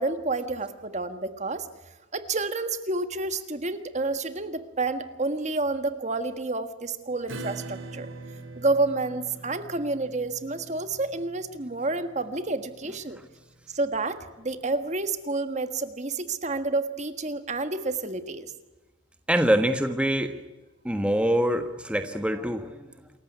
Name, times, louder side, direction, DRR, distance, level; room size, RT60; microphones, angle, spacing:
voice 1, 0.0-1.7 2.1-8.1 8.5-13.2 13.7-18.5, right 3 dB, 35° right, 9 dB, 1.6 m, -29 dB
Acoustic guitar / Strum, 7.3-14.5, right 2 dB, 80° right, 2.9 m, -43 dB
voice 2, 19.3-20.3 20.8-22.9, equal, 5° right, 7 dB, 1.4 m, -24 dB
27.5 x 15.0 x 9.4 m, 1.1 s
head